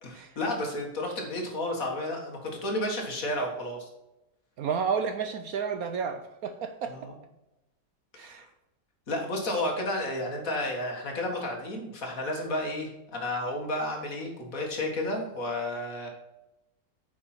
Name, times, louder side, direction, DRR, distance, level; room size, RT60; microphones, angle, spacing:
voice 1, 0.0-3.9 6.9-7.1 8.2-8.4 9.1-16.1, left 1 dB, 50° left, 2 dB, 2.1 m, -32 dB
voice 2, 4.6-7.1 8.2-8.4, right 6 dB, 65° right, 8 dB, 1.0 m, -31 dB
9.4 x 6.5 x 4.4 m, 0.93 s
omnidirectional pair, 1.9 m